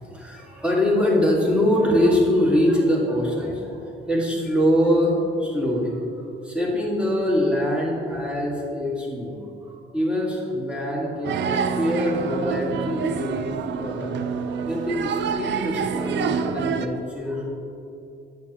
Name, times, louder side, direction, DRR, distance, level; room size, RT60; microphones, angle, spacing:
voice 1, 0.0-9.4 9.7-14.2 14.5-17.5, equal, 5° right, -4 dB, 1.8 m, -23 dB
sound 1, 11.2-16.9, right 6 dB, 65° right, 0.5 m, -27 dB
9.1 x 6.6 x 2.9 m, 2.7 s
cardioid pair, 90°, 20 cm